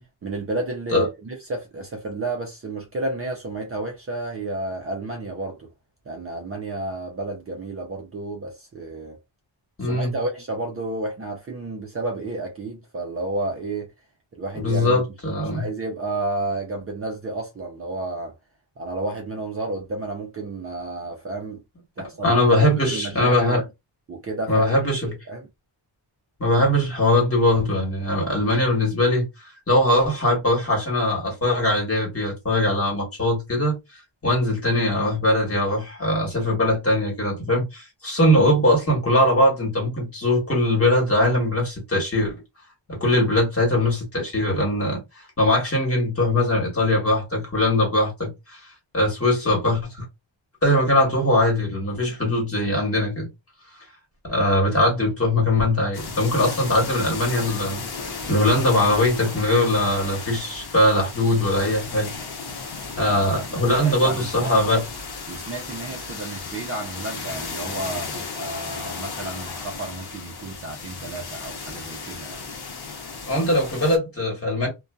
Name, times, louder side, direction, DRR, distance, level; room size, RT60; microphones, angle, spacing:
voice 1, 0.2-5.7 6.1-9.2 9.8-13.9 14.3-15.0 15.5-18.3 18.8-21.6 22.0-23.6 24.1-25.5 63.0-64.8 65.3-72.5, right 2 dB, 30° right, 0.5 m, -31 dB
voice 2, 9.8-10.1 14.5-15.7 22.2-23.6 24.5-25.1 26.4-29.3 29.7-33.8 34.2-42.3 42.9-48.6 48.9-50.0 50.6-53.3 54.2-62.1 63.0-64.8 73.3-74.7, left 1 dB, 30° left, 1.3 m, -21 dB
sound 1, 55.9-74.0, left 4 dB, 55° left, 0.8 m, -35 dB
2.6 x 2.2 x 2.2 m
wide cardioid pair, 150°, 46 cm